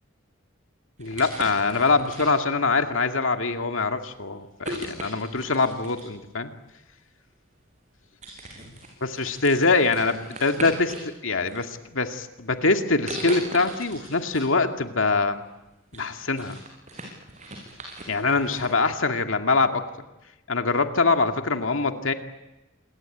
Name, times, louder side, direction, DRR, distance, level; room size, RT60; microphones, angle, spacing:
voice 1, 1.0-6.5 8.6-8.7 9.0-10.9 11.2-15.4 15.9-16.6 18.1-19.8 20.5-22.1, left 3 dB, 75° left, 6 dB, 2.2 m, -24 dB
sound 1, 1.0-2.7 3.4-3.6 4.6-6.2 7.3-7.4 7.8-11.1 11.5-12.2 13.1-14.5 14.9-15.0 15.5-18.8, right 1 dB, 35° right, 7.1 m, -39 dB
27.0 x 22.0 x 9.3 m, 0.98 s
head